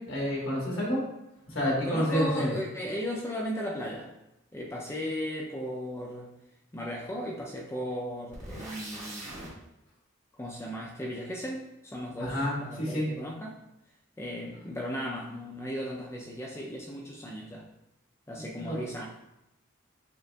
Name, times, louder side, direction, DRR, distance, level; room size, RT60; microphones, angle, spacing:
voice 1, 0.1-1.0 1.5-2.5 12.2-13.1 18.6-18.8, equal, 65° left, -4 dB, 1.4 m, -29 dB
voice 2, 1.8-4.1 4.5-6.3 6.7-9.5 10.4-13.6 14.2-17.7 18.3-19.1, equal, 15° left, -3 dB, 0.3 m, -36 dB
sound 1, 8.3-9.5, right 1 dB, 35° right, 1.4 m, -41 dB
6.5 x 2.4 x 2.2 m, 0.88 s
head